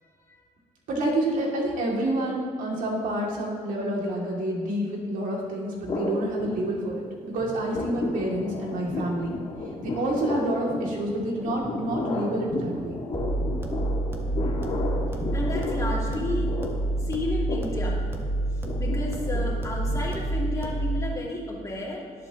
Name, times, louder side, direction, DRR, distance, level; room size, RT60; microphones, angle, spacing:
voice 1, 0.9-9.4 9.8-12.9, right 1 dB, 75° right, -2 dB, 2.7 m, -28 dB
sound 1, 5.9-7.1 7.4-20.5, left 2 dB, 45° left, 2.1 m, -34 dB
sound 2, 10.2-16.2, equal, ahead, 1.9 m, -44 dB
sound 3, 13.1-21.1, right 2 dB, 15° right, 1.5 m, -28 dB
voice 2, 15.3-16.5 17.0-18.0 18.8-22.3, left 1 dB, 25° left, -3 dB, 2.5 m, -32 dB
19.0 x 7.9 x 3.1 m, 2.2 s
cardioid pair, 115°, 14 cm